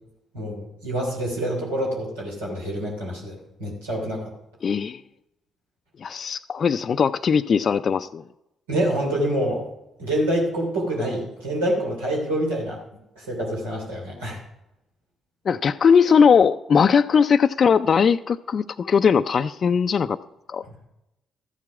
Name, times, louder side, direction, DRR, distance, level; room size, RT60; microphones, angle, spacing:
voice 1, 0.3-4.3 8.7-9.6 10.0-12.8 13.2-14.4, right 1 dB, 90° right, -4 dB, 2.9 m, -26 dB
voice 2, 4.6-5.0 6.0-8.2 15.5-20.2 20.5-20.6, left 6 dB, 50° left, 10 dB, 0.4 m, -19 dB
13.0 x 7.5 x 6.0 m, 0.90 s
hypercardioid pair, 45°, 0 cm